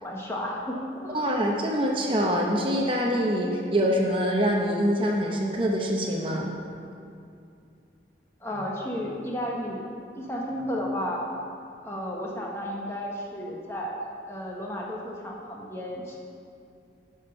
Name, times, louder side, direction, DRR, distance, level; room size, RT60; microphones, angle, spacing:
voice 1, 0.0-0.8 1.0-1.3 8.4-9.9 10.2-11.2 11.8-16.2, equal, 15° left, -2 dB, 1.1 m, -33 dB
voice 2, 1.1-6.5, equal, 30° right, -1 dB, 0.8 m, -25 dB
10.5 x 6.1 x 5.6 m, 2.5 s
head